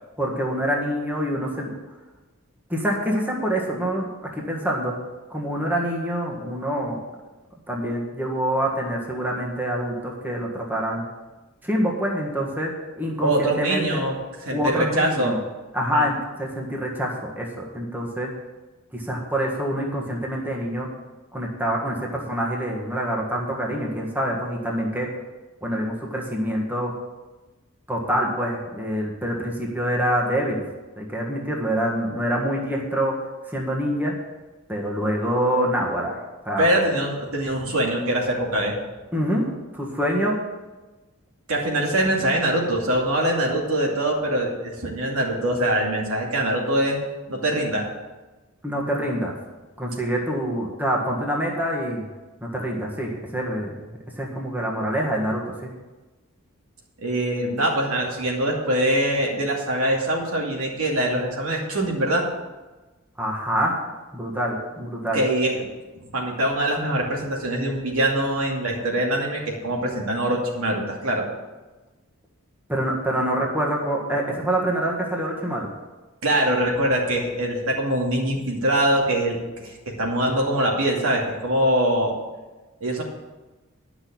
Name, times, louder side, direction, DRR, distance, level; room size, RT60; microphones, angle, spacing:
voice 1, 0.2-1.7 2.7-4.9 5.3-7.0 7.7-11.1 11.6-14.0 14.5-15.4 15.7-18.3 18.9-20.9 21.3-25.1 25.6-26.9 27.9-30.6 31.0-34.1 34.7-36.2 36.4-36.7 39.1-40.4 48.6-49.4 49.8-52.1 52.4-55.7 63.2-63.8 64.1-65.2 72.7-75.7, equal, 10° right, -2 dB, 1.6 m, -26 dB
voice 2, 13.2-14.1 14.5-15.4 15.9-16.1 36.6-38.8 41.5-47.0 47.3-47.9 57.0-62.2 65.1-65.6 66.1-71.2 76.2-82.1 82.8-83.0, right 1 dB, 80° right, -1 dB, 2.5 m, -23 dB
10.5 x 6.1 x 8.7 m, 1.2 s
head